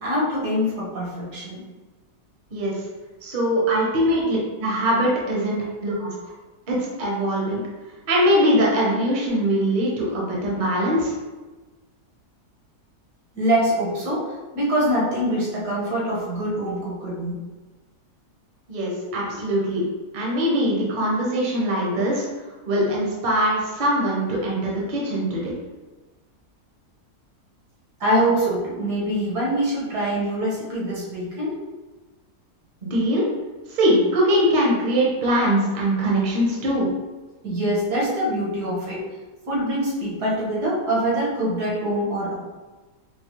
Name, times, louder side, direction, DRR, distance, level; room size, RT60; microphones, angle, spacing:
voice 1, 0.0-1.6 3.6-3.8 13.4-17.4 28.0-31.6 37.4-39.0 39.5-42.3, right 1 dB, 80° right, -6 dB, 1.8 m, -24 dB
voice 2, 3.2-6.1 6.7-7.6 8.1-11.1 18.7-19.9 20.1-22.2 22.7-25.5 32.8-33.3 33.7-36.9, equal, 40° right, -4 dB, 0.7 m, -22 dB
4.6 x 2.1 x 2.9 m, 1.2 s
omnidirectional pair, 1.7 m